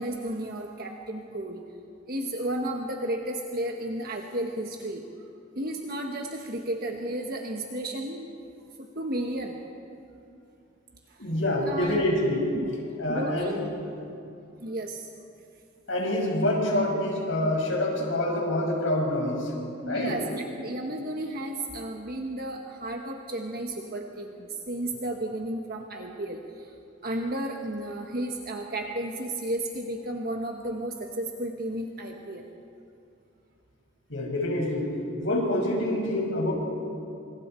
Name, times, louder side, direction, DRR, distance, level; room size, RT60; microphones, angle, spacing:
voice 1, 0.0-1.6 2.1-5.0 5.5-8.3 8.9-9.6 11.7-12.0 12.5-12.7 13.1-13.7 14.6-15.1 19.8-26.7 27.0-32.5, right 1 dB, 50° right, 2 dB, 1.3 m, -33 dB
voice 2, 11.2-12.5 13.0-13.7 15.9-19.5 19.9-20.2 34.1-34.9 35.2-36.5, left 1 dB, 75° left, -1 dB, 6.1 m, -26 dB
27.0 x 26.5 x 4.5 m, 2.6 s
head